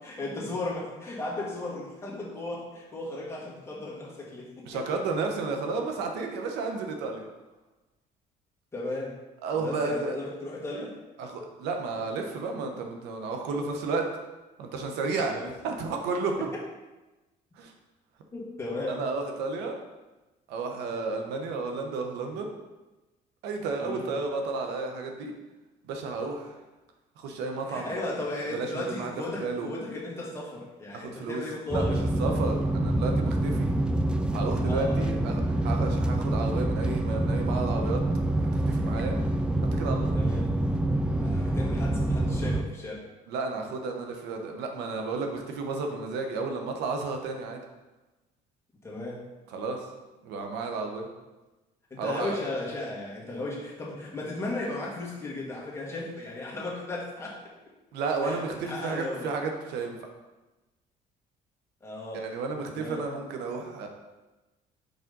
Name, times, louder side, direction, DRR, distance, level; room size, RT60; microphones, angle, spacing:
voice 1, 0.0-4.7 8.7-9.2 9.5-10.9 15.2-15.4 18.3-19.0 23.8-24.1 27.7-32.1 34.6-35.1 40.1-40.5 41.2-43.1 48.8-49.3 51.9-57.4 58.2-59.3 61.8-62.3 62.7-63.1, left 2 dB, 15° left, -5 dB, 1.8 m, -35 dB
voice 2, 4.7-7.2 9.4-10.2 11.2-14.0 14.6-16.4 17.6-17.7 18.9-19.8 20.5-22.5 23.4-25.3 25.9-26.6 27.2-27.9 28.5-29.1 29.4-29.7 30.9-31.4 31.7-33.7 34.3-38.0 38.7-39.2 39.7-40.1 43.3-47.6 49.5-49.9 50.2-51.1 52.0-52.4 57.9-60.0 62.1-63.9, right 4 dB, 90° right, 3 dB, 0.9 m, -32 dB
sound 1, 31.7-42.6, right 1 dB, 5° right, 0.4 m, -26 dB
5.1 x 4.9 x 3.9 m, 1.1 s
cardioid pair, 110°, 17 cm